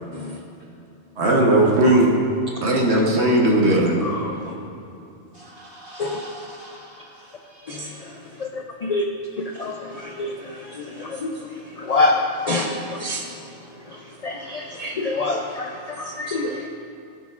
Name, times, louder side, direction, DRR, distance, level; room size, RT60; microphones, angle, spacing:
voice 1, 1.2-2.1 2.6-3.9, right 1 dB, 65° right, -2 dB, 1.3 m, -17 dB
voice 2, 4.0-4.6 6.0-6.2 7.7-9.1 9.4-16.7, left 2 dB, 55° left, 1 dB, 0.4 m, -27 dB
voice 3, 5.3-8.0, equal, 45° right, -5 dB, 1.9 m, -43 dB
15.0 x 5.9 x 2.4 m, 2.7 s
omnidirectional pair, 1.2 m